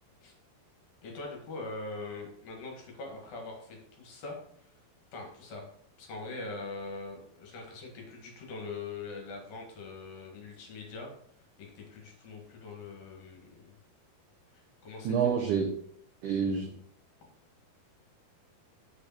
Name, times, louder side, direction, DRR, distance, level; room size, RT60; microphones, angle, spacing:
voice 1, 1.0-4.7 5.1-5.6 6.0-11.1 11.6-13.8 14.5-15.1, left 3 dB, 60° left, 0 dB, 3.2 m, -42 dB
voice 2, 15.0-15.7 16.2-16.7, right 6 dB, 85° right, 1 dB, 1.7 m, -27 dB
7.0 x 5.0 x 5.8 m, 0.66 s
omnidirectional pair, 4.8 m